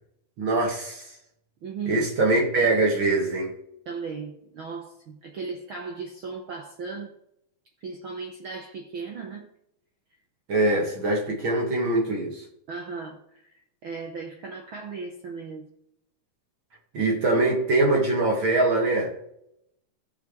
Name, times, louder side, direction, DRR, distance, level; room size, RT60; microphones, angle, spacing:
voice 1, 0.4-1.1 1.9-3.5 10.5-12.4 16.9-19.1, right 2 dB, 45° right, 0 dB, 2.3 m, -23 dB
voice 2, 1.6-2.1 3.9-7.1 7.8-9.5 12.7-15.7, right 4 dB, 65° right, 2 dB, 1.4 m, -37 dB
17.0 x 5.9 x 3.2 m, 0.77 s
omnidirectional pair, 3.4 m